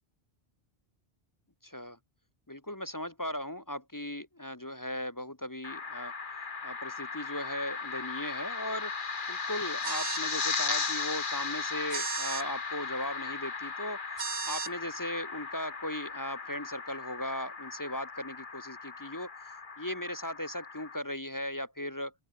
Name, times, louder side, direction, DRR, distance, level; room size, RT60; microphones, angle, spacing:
voice 1, 1.6-2.0 2.5-6.1 6.6-8.9 9.3-14.0 14.5-19.3 19.8-22.1, left 1 dB, 20° left, 1.0 m, -37 dB
sound 1, 5.6-21.0, left 4 dB, 50° left, 1.6 m, -37 dB
sound 2, 9.8-10.3 11.9-12.5 14.2-14.7, right 6 dB, 40° right, 0.6 m, -35 dB
open air
omnidirectional pair, 1.1 m